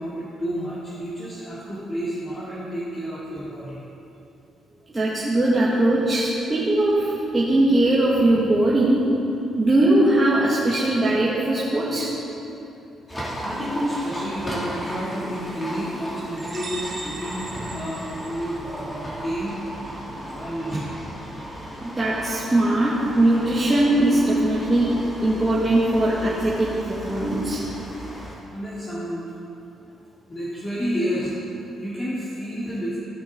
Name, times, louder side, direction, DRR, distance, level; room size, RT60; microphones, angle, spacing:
voice 1, 0.0-3.8 13.4-19.6 20.3-20.9 28.4-29.3 30.3-31.5 31.8-33.0, equal, 30° left, -10 dB, 2.3 m, -30 dB
voice 2, 4.9-9.0 9.6-12.1 21.8-24.9 25.2-27.6, right 1 dB, 20° right, -8 dB, 1.7 m, -20 dB
Livestock farm animals working animals, 13.1-28.4, equal, 15° left, 2.3 m, -36 dB
sound 1, 16.4-19.0, right 2 dB, 40° right, 1.7 m, -38 dB
15.5 x 5.3 x 3.7 m, 2.8 s
cardioid pair, 90°, 0 cm